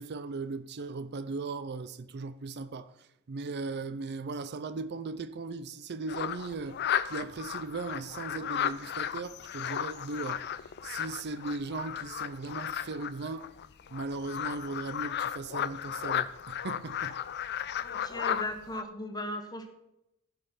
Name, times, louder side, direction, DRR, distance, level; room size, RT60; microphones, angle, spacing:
voice 1, 0.0-2.9 3.3-10.4 10.8-13.5 13.9-17.2, right 3 dB, 50° right, 0.5 m, -38 dB
sound 1, 6.1-18.8, left 9 dB, 50° left, 0.5 m, -34 dB
voice 2, 17.7-19.7, left 1 dB, 20° left, 1.3 m, -37 dB
15.5 x 5.3 x 5.7 m
head